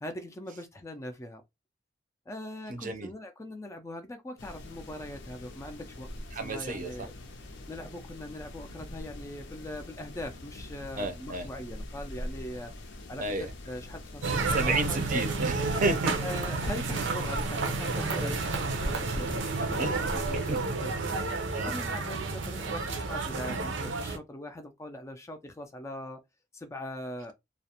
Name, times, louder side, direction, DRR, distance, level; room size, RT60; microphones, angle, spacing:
voice 1, 0.0-1.4 2.3-6.1 6.3-7.1 7.4-12.7 13.1-15.0 16.2-26.2 26.5-27.3, left 1 dB, 15° left, 0.3 m, -41 dB
voice 2, 2.7-3.1 6.3-7.1 10.9-11.5 13.2-13.5 14.3-16.2 19.8-20.6 21.5-21.7, right 2 dB, 45° right, 0.5 m, -32 dB
sound 1, 4.4-20.6, left 1 dB, 70° left, 0.5 m, -42 dB
sound 2, 14.2-24.2, right 3 dB, 85° right, 0.6 m, -31 dB
2.4 x 2.0 x 2.8 m
head